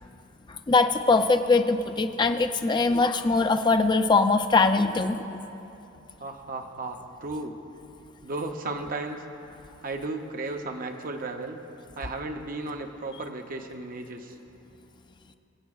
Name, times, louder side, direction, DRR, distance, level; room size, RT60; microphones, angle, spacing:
voice 1, 0.5-5.2, left 3 dB, 25° left, 7 dB, 0.4 m, -22 dB
voice 2, 6.2-7.6 8.2-9.2 9.8-11.6 12.0-14.3, right 2 dB, 45° right, 4 dB, 0.6 m, -34 dB
24.5 x 8.2 x 2.3 m, 2.9 s
head